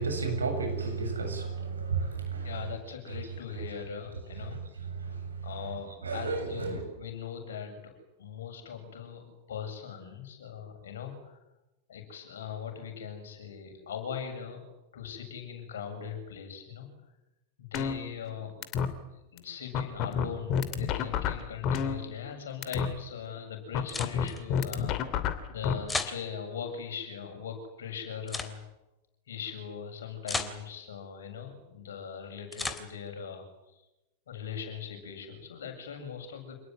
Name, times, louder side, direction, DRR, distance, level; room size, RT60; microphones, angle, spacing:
voice 1, 0.0-2.5 5.1-5.2 6.0-6.8, right 4 dB, 75° right, 5 dB, 7.7 m, -32 dB
voice 2, 2.4-4.6 5.4-7.9 8.2-11.4 11.9-16.9 17.6-18.5 19.3-28.6 29.3-33.5 34.3-36.6, left 7 dB, 60° left, 4 dB, 7.6 m, -40 dB
sound 1, 17.7-18.3 18.6-18.9 19.4-19.5 19.7-22.3 22.6-22.9 23.7-25.7, left 7 dB, 40° left, 2.8 m, -29 dB
sound 2, 23.9-24.4 25.9-26.2 28.3-28.5 30.3-30.6 32.5-32.9, left 3 dB, 10° left, 3.0 m, -33 dB
27.5 x 19.0 x 9.5 m, 0.97 s
figure-of-eight pair, 90°, 0 cm